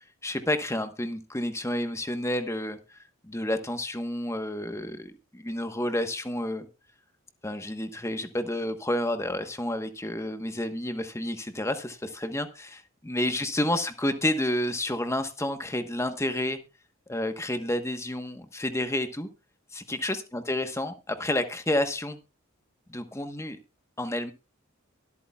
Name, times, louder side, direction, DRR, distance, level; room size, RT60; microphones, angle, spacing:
voice 1, 0.2-3.0 3.2-6.7 7.4-16.6 17.1-19.3 19.7-22.2 22.9-23.6 24.0-24.3, left 1 dB, 15° left, 8 dB, 1.2 m, -30 dB
23.5 x 8.5 x 2.4 m, 0.28 s
head